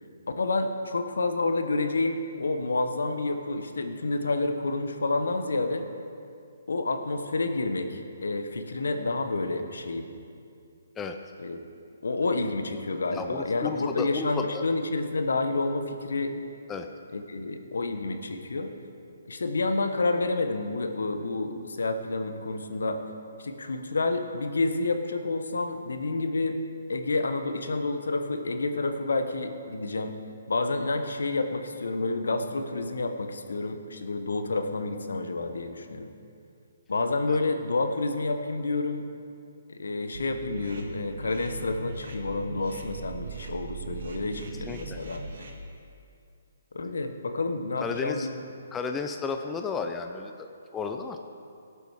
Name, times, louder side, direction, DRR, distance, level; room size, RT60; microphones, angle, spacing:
voice 1, 0.4-5.9 6.7-10.1 11.4-11.6 12.0-16.4 17.1-18.7 19.3-23.0 23.4-26.6 26.9-30.1 30.5-36.1 36.9-39.1 39.7-45.2 46.7-48.3, left 3 dB, 70° left, 7 dB, 1.2 m, -29 dB
voice 2, 13.1-14.6 16.7-16.9 37.3-37.4 44.7-45.0 47.8-48.3 48.7-51.2, left 5 dB, 15° left, 5 dB, 0.6 m, -33 dB
sound 1, 40.1-45.5, right 3 dB, 60° right, 2.0 m, -40 dB
18.0 x 8.4 x 4.8 m, 2.5 s
figure-of-eight pair, 135°, 0 cm